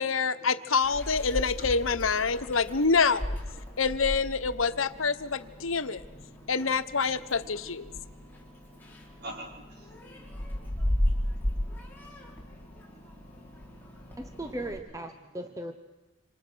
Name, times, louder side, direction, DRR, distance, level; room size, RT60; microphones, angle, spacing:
voice 1, 0.0-3.3 3.8-6.0 6.5-7.9, left 5 dB, 90° left, 11 dB, 1.2 m, -26 dB
Meow, 0.8-14.8, left 1 dB, 10° left, 4.6 m, -36 dB
voice 2, 5.6-6.5 7.3-13.8, right 1 dB, 55° right, 1 dB, 5.5 m, -51 dB
voice 3, 14.2-15.7, right 1 dB, 15° right, 6 dB, 1.2 m, -37 dB
27.5 x 26.5 x 6.4 m, 1.1 s
head